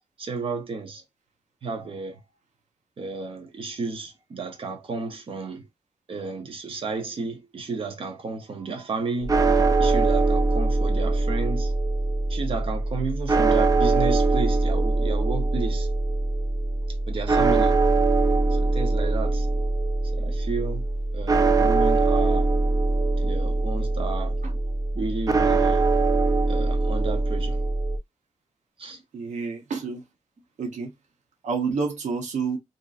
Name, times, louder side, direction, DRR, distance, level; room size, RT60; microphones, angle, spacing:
voice 1, 0.2-1.0 1.6-2.2 3.0-5.7 6.1-11.7 12.3-15.9 17.1-17.8 18.5-19.5 20.1-20.9 21.1-22.5 23.2-24.4 24.9-25.9 26.5-27.6 28.8-29.0, right 4 dB, 45° right, 0.8 m, -32 dB
sound 1, 9.2-28.0, right 3 dB, 30° right, 0.4 m, -22 dB
voice 2, 29.1-30.0 30.6-30.9 31.4-32.6, right 5 dB, 75° right, 0.7 m, -29 dB
2.9 x 2.6 x 2.3 m
wide cardioid pair, 135°, 12 cm